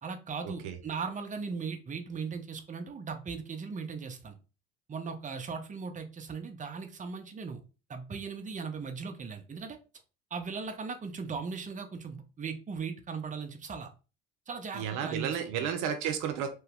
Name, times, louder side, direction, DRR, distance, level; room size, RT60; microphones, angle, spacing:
voice 1, 0.0-4.3 4.9-7.6 7.9-9.8 10.3-13.9 14.5-15.7, right 5 dB, 25° right, 5 dB, 0.7 m, -38 dB
voice 2, 14.7-16.5, right 8 dB, 70° right, 6 dB, 0.6 m, -32 dB
3.0 x 2.2 x 3.4 m, 0.32 s
hypercardioid pair, 60°, 30 cm